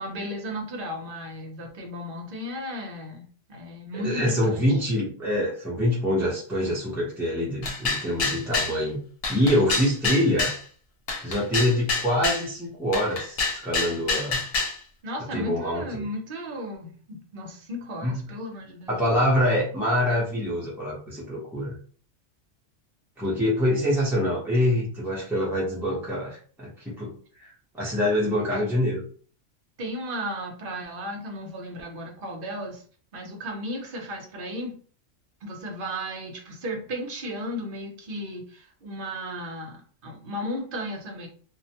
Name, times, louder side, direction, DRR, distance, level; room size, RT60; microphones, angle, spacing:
voice 1, 0.0-3.2 3.5-4.7 15.0-18.9 29.8-32.8 33.1-34.8 35.4-41.3, equal, 50° right, 1 dB, 0.8 m, -35 dB
voice 2, 3.9-9.0 9.3-10.5 11.2-14.4 15.3-16.0 18.0-18.3 18.9-21.8 23.2-29.0, left 1 dB, 5° right, -5 dB, 0.4 m, -25 dB
sound 1, 7.6-8.8 9.2-10.6 11.1-12.5 12.9-14.8, left 3 dB, 75° left, 0.3 m, -27 dB
2.4 x 2.1 x 2.8 m, 0.43 s
omnidirectional pair, 1.3 m